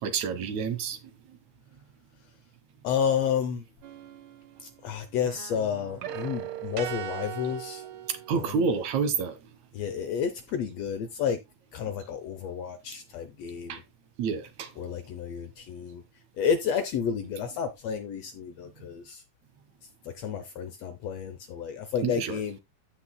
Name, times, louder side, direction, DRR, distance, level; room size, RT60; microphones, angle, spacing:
voice 1, 0.0-1.0 8.1-9.4 13.7-13.8 14.2-14.7 22.0-22.4, right 5 dB, 70° right, 2.5 m, -28 dB
voice 2, 2.8-3.6 4.6-7.8 8.3-8.5 9.7-11.4 11.7-13.8 14.8-16.0 16.4-19.2 20.0-22.6, left 7 dB, 70° left, 1.7 m, -31 dB
sound 1, 3.8-4.9 5.2-8.7, right 11 dB, 85° right, 1.1 m, -39 dB
15.0 x 6.2 x 2.2 m
omnidirectional pair, 3.6 m